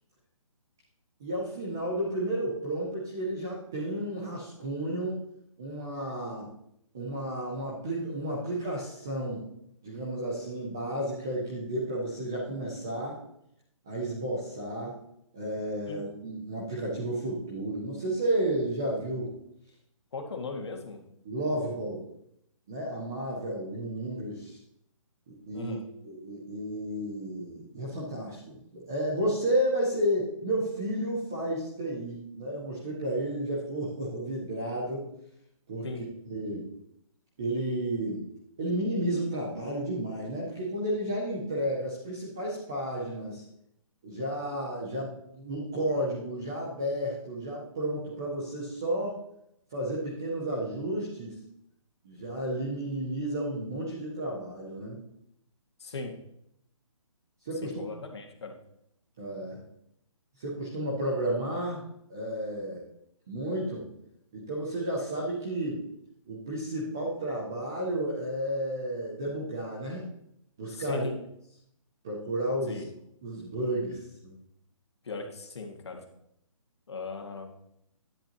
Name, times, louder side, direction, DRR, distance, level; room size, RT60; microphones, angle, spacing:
voice 1, 1.2-5.2 5.6-6.5 6.9-9.5 9.8-13.2 13.9-15.0 15.3-19.3 21.2-22.0 22.7-24.6 25.3-25.8 26.0-35.1 35.7-36.7 37.4-38.3 38.6-43.4 44.0-49.2 49.7-51.4 52.0-55.0 57.4-57.8 59.2-59.6 60.4-61.8 62.1-62.8 63.3-63.9 64.3-65.8 66.3-70.0 70.6-71.1 72.0-72.8 73.2-74.3, right 1 dB, 5° right, -5 dB, 0.4 m, -32 dB
voice 2, 20.1-21.0 25.5-25.8 35.8-36.0 55.8-56.1 57.6-58.6 70.7-71.2 72.7-72.9 75.0-76.0 76.9-77.5, left 3 dB, 50° left, 4 dB, 1.8 m, -38 dB
10.5 x 10.0 x 2.9 m, 0.75 s
hypercardioid pair, 175°, 17 cm